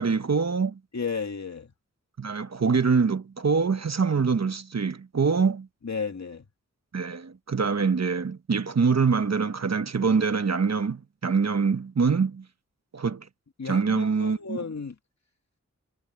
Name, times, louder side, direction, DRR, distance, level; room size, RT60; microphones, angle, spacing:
voice 1, 0.0-0.8 2.2-5.7 6.9-12.4 12.9-13.3 13.6-14.6, right 5 dB, 60° right, 1.3 m, -24 dB
voice 2, 0.9-1.7 5.8-6.5 13.6-15.0, left 5 dB, 65° left, 2.3 m, -33 dB
cardioid pair, 45°, 30 cm